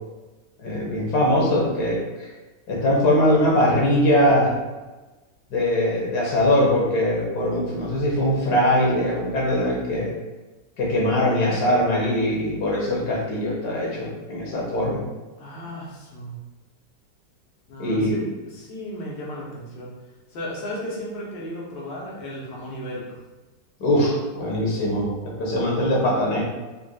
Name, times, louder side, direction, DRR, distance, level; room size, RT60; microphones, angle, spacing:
voice 1, 0.6-2.3 2.7-4.5 5.5-10.1 10.8-15.0 17.8-18.2 23.8-26.4, left 1 dB, 65° left, -4 dB, 1.4 m, -21 dB
voice 2, 15.4-16.4 17.7-19.9 20.3-23.2, equal, 90° left, -5 dB, 1.6 m, -35 dB
4.1 x 2.5 x 2.3 m, 1.2 s
omnidirectional pair, 1.9 m